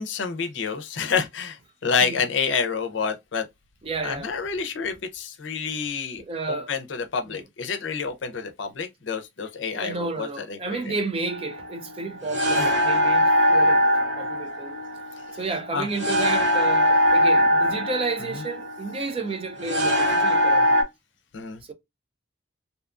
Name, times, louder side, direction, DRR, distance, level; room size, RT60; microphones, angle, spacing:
voice 1, 0.0-3.5 4.0-6.2 6.5-10.8 12.6-12.7 15.7-15.9 21.3-21.6, left 5 dB, 70° left, 0.5 m, -28 dB
voice 2, 3.8-4.3 6.2-6.7 7.3-7.4 9.7-13.8 14.2-14.8 15.3-20.8, right 3 dB, 30° right, 0.4 m, -31 dB
sound 1, 11.3-20.8, equal, 65° right, 0.8 m, -22 dB
2.7 x 2.3 x 2.3 m
head